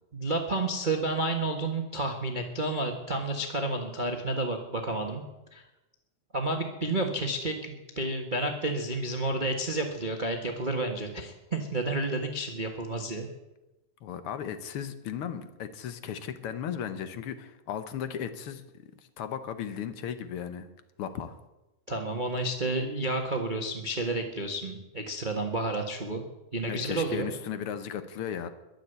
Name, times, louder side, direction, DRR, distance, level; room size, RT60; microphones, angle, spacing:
voice 1, 0.1-5.2 5.5-5.6 6.3-13.3 21.9-26.2 26.5-27.3, right 2 dB, 75° right, 3 dB, 0.4 m, -30 dB
voice 2, 14.0-18.6 19.2-20.7 21.0-21.4 26.7-28.5, left 8 dB, 65° left, 11 dB, 1.4 m, -36 dB
22.0 x 7.3 x 8.0 m, 1.0 s
omnidirectional pair, 3.5 m